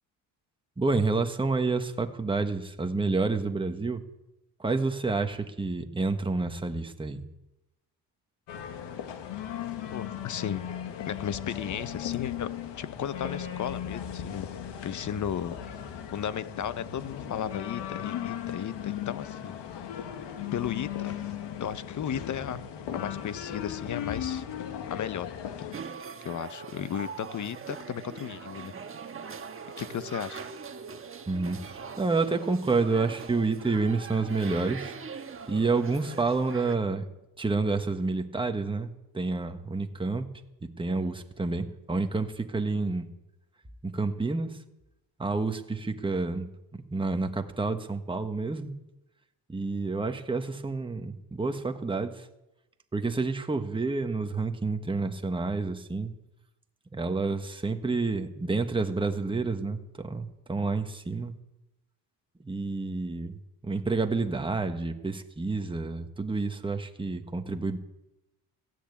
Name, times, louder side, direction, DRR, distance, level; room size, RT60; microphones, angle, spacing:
voice 1, 0.8-4.0 4.6-7.2 31.3-34.9 35.5-37.1 37.4-40.3 40.6-43.1 43.8-44.6 45.2-48.7 49.5-52.3 52.9-56.1 56.9-61.4 62.4-67.8, right 3 dB, 10° right, 6 dB, 1.3 m, -29 dB
sound 1, 8.5-25.8, left 9 dB, 75° left, 1.6 m, -37 dB
voice 2, 9.9-10.7 11.1-14.5 14.8-15.6 16.1-19.6 19.9-20.0 20.5-21.2 21.6-22.6 22.9-24.4 24.9-25.3 26.2-28.7 29.8-30.5, left 9 dB, 45° left, 14 dB, 0.9 m, -35 dB
sound 2, 25.7-36.8, right 5 dB, 30° right, 1.4 m, -41 dB
16.0 x 10.0 x 8.4 m, 0.93 s
cardioid pair, 110°, 43 cm